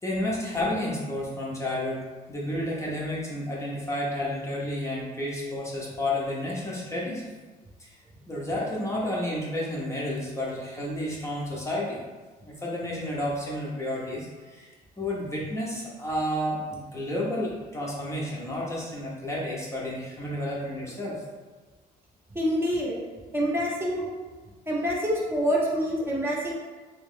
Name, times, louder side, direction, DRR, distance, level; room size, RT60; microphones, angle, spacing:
voice 1, 0.0-7.3 7.8-8.0 8.3-12.0 12.4-21.2, left 1 dB, 15° left, -5 dB, 0.8 m, -31 dB
voice 2, 22.3-23.0 23.3-24.0 24.7-26.5, equal, 15° right, -5 dB, 0.9 m, -26 dB
3.1 x 2.9 x 3.7 m, 1.3 s
cardioid pair, 110°, 17 cm